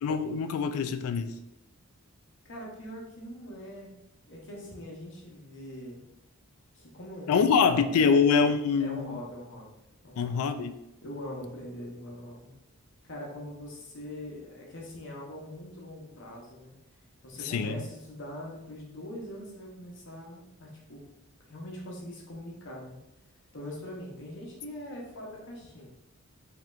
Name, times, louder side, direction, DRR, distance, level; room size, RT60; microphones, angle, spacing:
voice 1, 0.0-1.3 7.3-9.2 10.2-10.7 17.4-17.8, left 5 dB, 70° left, 10 dB, 0.3 m, -25 dB
voice 2, 2.4-3.9 4.3-6.0 6.7-8.2 8.8-9.7 10.0-10.4 11.0-12.5 13.1-16.8 17.2-21.0 21.5-23.0 23.5-25.9, left 1 dB, 55° left, -2 dB, 0.9 m, -42 dB
4.3 x 2.8 x 2.4 m, 0.90 s
head